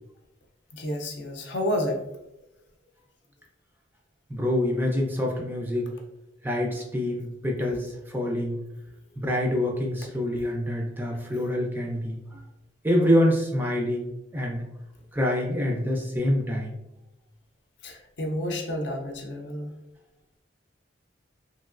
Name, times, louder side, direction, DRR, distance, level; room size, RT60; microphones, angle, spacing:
voice 1, 0.7-2.0 17.8-19.7, left 1 dB, 60° left, 2 dB, 0.6 m, -30 dB
voice 2, 4.3-5.9 6.4-8.6 9.2-12.4 12.8-14.6 15.1-16.7, left 1 dB, 10° right, 0 dB, 0.4 m, -26 dB
3.0 x 2.8 x 2.4 m, 0.89 s
head